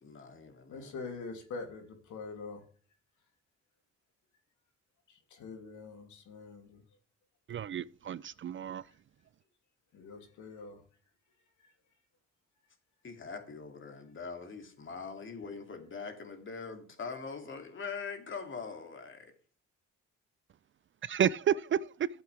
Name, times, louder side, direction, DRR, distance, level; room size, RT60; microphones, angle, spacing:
voice 1, 0.0-0.9 13.0-19.3, left 5 dB, 40° left, 2.7 m, -42 dB
voice 2, 0.7-2.6 5.1-6.8 9.9-10.8 11.6-11.7, left 4 dB, 75° left, 2.9 m, -44 dB
voice 3, 7.5-8.8 21.0-22.1, right 9 dB, 40° right, 0.4 m, -31 dB
12.5 x 8.0 x 3.4 m
cardioid pair, 90°, 30 cm